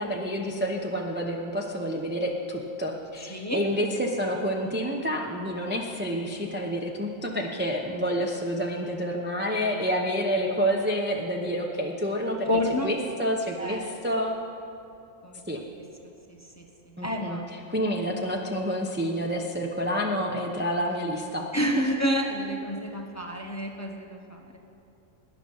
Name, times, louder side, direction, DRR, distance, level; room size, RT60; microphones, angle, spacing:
voice 1, 0.0-12.5 12.8-14.4 15.5-15.6 17.0-17.4 17.7-21.9, equal, 10° right, 0 dB, 0.7 m, -28 dB
voice 2, 12.5-12.9 13.6-13.9 15.2-15.6 16.3-16.7 17.0-17.4 21.5-24.4, equal, 15° left, 1 dB, 1.0 m, -29 dB
19.0 x 10.0 x 5.5 m, 2.6 s
omnidirectional pair, 1.4 m